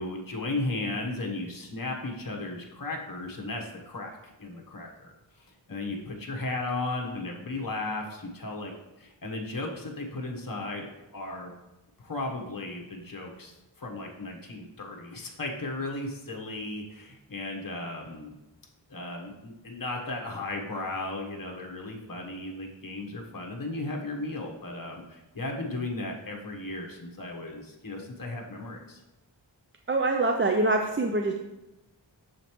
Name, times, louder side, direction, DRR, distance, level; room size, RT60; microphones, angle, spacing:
voice 1, 0.0-8.7 9.0-11.5 12.0-18.3 18.9-29.0, left 2 dB, 50° left, 0 dB, 1.1 m, -35 dB
voice 2, 29.9-31.4, right 2 dB, 30° right, 3 dB, 0.4 m, -24 dB
7.2 x 5.1 x 3.0 m, 0.99 s
wide cardioid pair, 45°, 45 cm